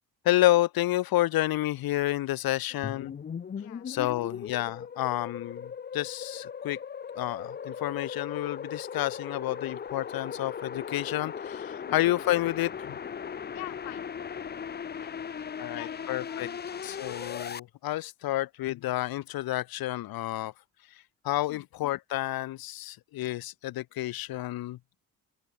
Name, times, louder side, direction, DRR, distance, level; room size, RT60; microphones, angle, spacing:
voice 1, 0.2-3.1 3.9-6.8 7.1-13.0 15.6-16.5 16.8-20.5 21.2-24.8, left 15 dB, 60° left, 0.9 m, -30 dB
sound 1, 2.8-17.6, left 7 dB, 25° left, 0.6 m, -38 dB
voice 2, 13.5-14.1 15.0-17.1 21.5-21.7, left 30 dB, 85° left, 1.9 m, -48 dB
open air
hypercardioid pair, 55°, 40 cm